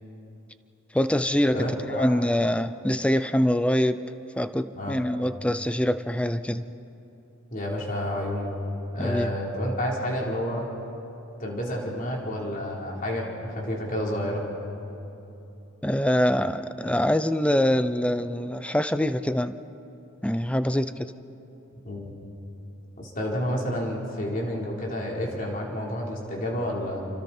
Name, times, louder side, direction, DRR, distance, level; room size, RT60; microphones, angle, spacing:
voice 1, 0.9-4.0 4.4-6.6 9.0-9.3 15.8-19.5 20.2-21.1, equal, 5° left, 12 dB, 0.5 m, -24 dB
voice 2, 1.5-2.2 4.7-5.0 7.5-8.5 8.9-10.7 11.4-14.4 21.8-22.1 23.0-27.0, equal, 40° left, -3 dB, 4.0 m, -30 dB
29.0 x 25.5 x 4.4 m, 2.9 s
head